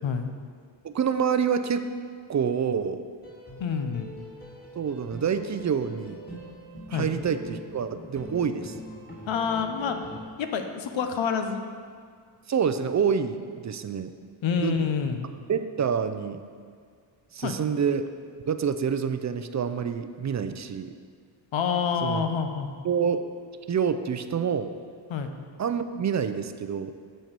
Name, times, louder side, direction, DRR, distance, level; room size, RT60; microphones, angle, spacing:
voice 1, 0.8-1.9 2.3-3.1 4.8-6.4 6.9-8.8 12.5-14.1 14.6-14.7 15.5-16.4 17.3-18.1 18.4-20.9 22.0-22.2 22.8-23.2 23.7-24.7 25.6-27.0, right 7 dB, 40° right, 10 dB, 0.5 m, -27 dB
sound 1, 3.2-10.2, left 1 dB, 20° left, 2.3 m, -43 dB
voice 2, 3.6-4.1 6.9-7.1 9.3-11.6 14.4-15.2 17.4-17.5 21.5-22.7 25.1-25.3, left 6 dB, 70° left, 6 dB, 0.9 m, -27 dB
9.2 x 4.5 x 6.7 m, 2.1 s
cardioid pair, 100°, 47 cm